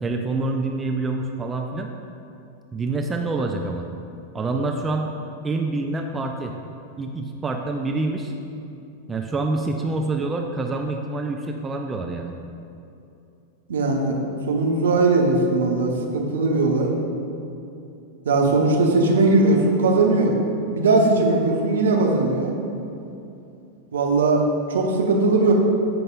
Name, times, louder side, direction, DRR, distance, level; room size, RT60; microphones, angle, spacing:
voice 1, 0.0-1.9 2.7-3.9 4.3-5.1 5.4-6.5 7.0-8.3 9.1-12.3, right 3 dB, 15° right, 3 dB, 0.4 m, -26 dB
voice 2, 13.7-14.2 14.5-16.9 18.2-20.4 20.7-22.5 23.9-24.4 24.7-25.5, right 3 dB, 65° right, 0 dB, 1.0 m, -19 dB
14.0 x 5.3 x 2.5 m, 2.7 s
figure-of-eight pair, 90°, 0 cm